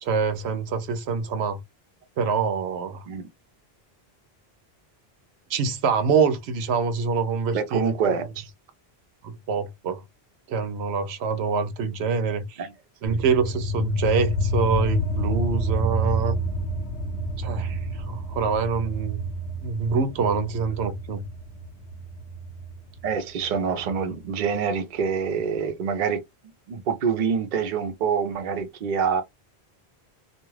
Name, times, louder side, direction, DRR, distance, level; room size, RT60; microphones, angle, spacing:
voice 1, 0.0-1.6 2.2-3.0 5.5-7.9 9.2-10.0 10.5-12.6 13.0-16.3 17.4-19.3 19.6-21.2, right 5 dB, 85° right, 0.9 m, -25 dB
voice 2, 7.5-8.5 12.6-12.7 13.1-13.2 23.0-26.2 26.7-29.2, right 6 dB, 55° right, 0.7 m, -26 dB
sound 1, 13.1-24.1, equal, 80° left, 0.9 m, -29 dB
2.4 x 2.3 x 3.1 m
omnidirectional pair, 1.1 m